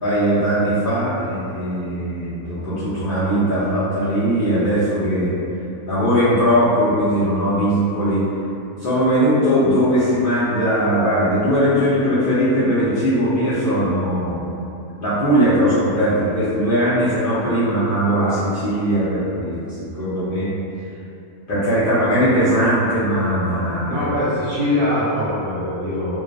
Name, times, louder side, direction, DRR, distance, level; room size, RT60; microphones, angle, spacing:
voice 1, 0.0-5.3 5.8-8.3 8.8-14.4 15.0-20.5 21.5-24.1, equal, 60° left, -13 dB, 0.5 m, -19 dB
voice 2, 23.8-26.2, left 1 dB, 90° right, -8 dB, 1.1 m, -22 dB
2.3 x 2.3 x 2.5 m, 2.8 s
omnidirectional pair, 1.5 m